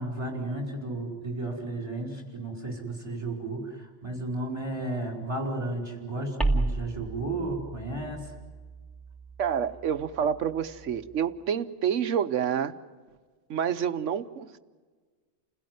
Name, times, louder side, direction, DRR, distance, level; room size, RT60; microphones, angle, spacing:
voice 1, 0.0-8.3, right 2 dB, 25° right, 1 dB, 4.9 m, -33 dB
sound 1, 6.4-11.2, right 2 dB, ahead, 2.1 m, -34 dB
voice 2, 9.4-12.8 13.5-14.6, right 8 dB, 75° right, 11 dB, 1.3 m, -28 dB
29.5 x 16.5 x 9.3 m, 1.4 s
omnidirectional pair, 1.3 m